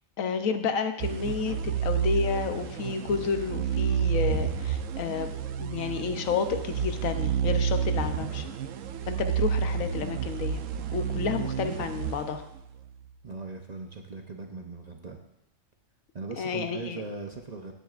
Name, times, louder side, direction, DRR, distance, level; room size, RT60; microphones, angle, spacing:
voice 1, 0.2-8.5 9.1-10.6 10.9-12.4 16.4-17.0, left 6 dB, 80° left, 8 dB, 1.2 m, -31 dB
sound 1, 1.0-12.9, right 7 dB, 75° right, 1.0 m, -30 dB
voice 2, 13.2-15.2 16.1-17.7, right 3 dB, 40° right, 3 dB, 0.7 m, -39 dB
15.5 x 9.2 x 2.5 m, 0.83 s
omnidirectional pair, 1.4 m